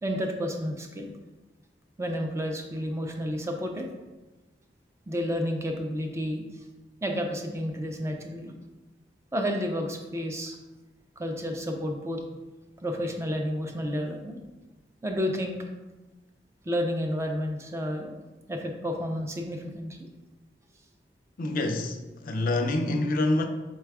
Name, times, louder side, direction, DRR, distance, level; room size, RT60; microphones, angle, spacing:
voice 1, 0.0-1.1 2.0-3.9 5.1-6.4 7.0-8.5 9.3-10.6 11.2-12.2 12.8-14.4 15.0-15.6 16.7-18.2 18.5-20.0, equal, 15° right, 0.4 m, -31 dB
voice 2, 21.4-22.0 22.2-23.5, left 2 dB, 50° left, 0.4 m, -26 dB
4.0 x 2.2 x 4.6 m
head